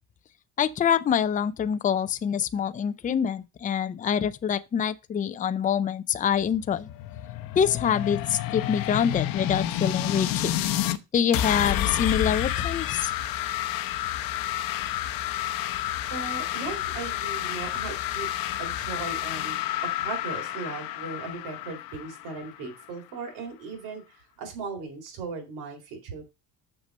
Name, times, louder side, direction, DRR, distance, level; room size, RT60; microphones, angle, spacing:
voice 1, 0.6-6.9 7.6-10.5 11.1-13.1, left 8 dB, 20° left, 0.5 m, -25 dB
sound 1, 6.3-11.0 11.3-22.9, left 13 dB, 65° left, 0.9 m, -30 dB
voice 2, 16.1-18.3 18.6-19.7 20.0-26.2, right 4 dB, 85° right, 3.9 m, -37 dB
6.8 x 6.0 x 5.3 m
cardioid pair, 145°, 36 cm